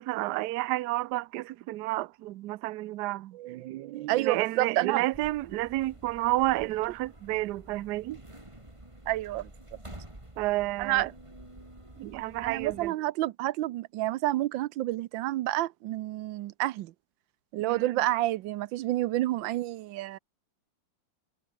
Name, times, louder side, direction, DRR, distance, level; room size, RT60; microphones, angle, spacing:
voice 1, 0.0-3.4 4.1-8.2 10.4-11.1 12.0-12.9 17.6-18.0, right 18 dB, 70° right, 1.1 m, -30 dB
voice 2, 3.3-5.0 9.1-9.5 10.8-11.1 12.4-16.9 17.5-20.2, right 15 dB, 90° right, 1.4 m, -29 dB
sound 1, 5.1-12.9, right 1 dB, 15° right, 3.9 m, -49 dB
omnidirectional pair, 2.0 m